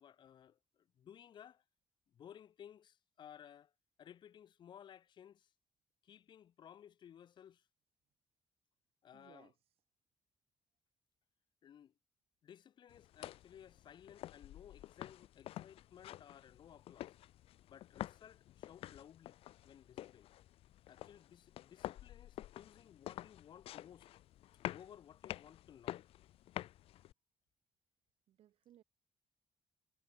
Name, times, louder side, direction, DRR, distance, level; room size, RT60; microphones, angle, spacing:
voice 1, 0.0-1.6 2.1-3.7 4.0-5.5 6.0-7.7 9.0-9.5 11.6-11.9 12.4-17.1 17.7-19.4 19.6-20.3 20.9-24.1 24.7-26.1, left 9 dB, 55° left, 0.9 m, -58 dB
voice 2, 9.1-9.8 26.4-26.6 28.3-28.8, right 12 dB, 85° right, 5.5 m, -65 dB
sound 1, 12.9-27.1, left 14 dB, 90° left, 0.4 m, -49 dB
wide cardioid pair, 160°, 10 cm